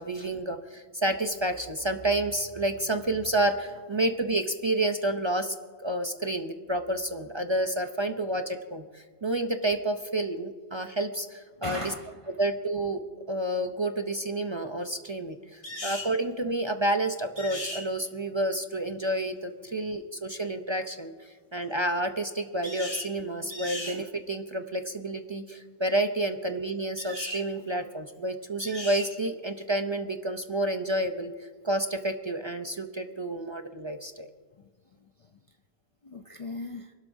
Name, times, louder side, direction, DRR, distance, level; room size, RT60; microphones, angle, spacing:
voice 1, 0.0-11.9 12.4-13.0 13.3-31.3 31.6-34.3, right 1 dB, 30° right, 6 dB, 0.6 m, -30 dB
voice 2, 11.6-12.4 35.0-35.3 36.0-36.9, left 2 dB, 40° left, 5 dB, 0.5 m, -39 dB
sound 1, 15.6-16.1 17.4-17.8 22.6-23.1 23.5-24.0 27.0-27.4 28.6-29.1, left 1 dB, 60° left, 2.5 m, -37 dB
27.0 x 12.5 x 2.7 m, 1.5 s
omnidirectional pair, 1.1 m